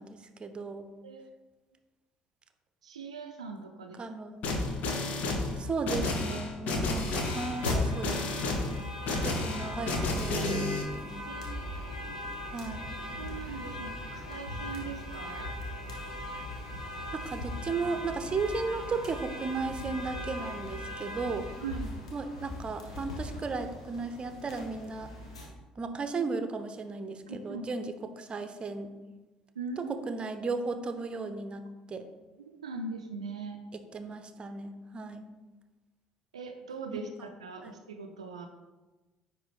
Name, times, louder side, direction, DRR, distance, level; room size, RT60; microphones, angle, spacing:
voice 1, 0.0-0.9 4.0-4.4 5.6-8.5 9.2-11.2 12.5-12.9 17.1-21.5 22.1-25.1 25.8-28.9 29.8-31.6 31.9-32.1 33.7-35.3 37.6-37.7, right 4 dB, 30° right, 9 dB, 0.6 m, -35 dB
voice 2, 2.8-4.1 6.3-6.4 6.7-6.9 11.3-12.2 13.1-15.5 21.6-21.9 27.3-27.7 29.6-29.9 32.4-33.6 36.3-38.5, right 4 dB, 85° right, 5 dB, 0.4 m, -41 dB
sound 1, 4.4-10.8, left 2 dB, 55° left, 1.1 m, -31 dB
sound 2, 7.1-25.5, left 1 dB, 85° left, 0.9 m, -39 dB
9.5 x 3.3 x 3.2 m, 1.2 s
figure-of-eight pair, 55°, 3 cm